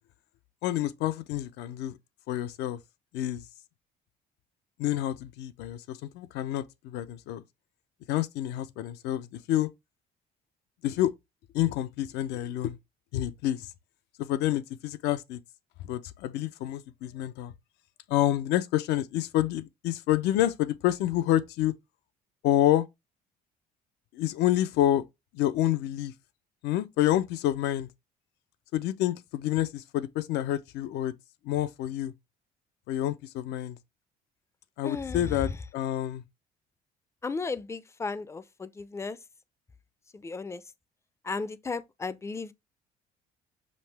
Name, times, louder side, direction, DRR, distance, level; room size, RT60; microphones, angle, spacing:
voice 1, 0.6-2.0 2.3-2.8 3.1-3.4 4.8-7.4 8.1-9.7 10.8-11.1 11.5-12.8 13.1-13.6 14.2-15.4 15.9-17.5 18.1-21.7 22.4-22.9 24.1-25.0 25.3-26.1 26.6-27.9 28.7-31.1 31.4-32.1 32.9-33.8 34.8-36.2, left 13 dB, 85° left, 0.5 m, -28 dB
voice 2, 34.8-35.3 37.2-39.2 40.2-40.6 41.2-42.5, left 4 dB, 15° left, 0.4 m, -35 dB
5.2 x 2.8 x 3.2 m
cardioid pair, 110°, 17 cm